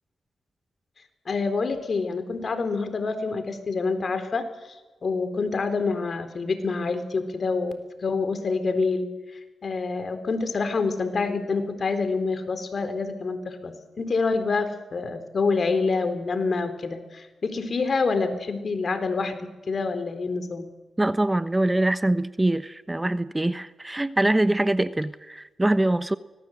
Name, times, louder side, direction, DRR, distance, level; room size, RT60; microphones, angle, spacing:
voice 1, 1.3-9.1 9.6-20.7, left 4 dB, 55° left, 9 dB, 3.8 m, -27 dB
voice 2, 21.0-26.2, right 1 dB, 15° right, 13 dB, 1.0 m, -23 dB
24.5 x 19.5 x 7.9 m, 1.2 s
cardioid pair, 55°, 0 cm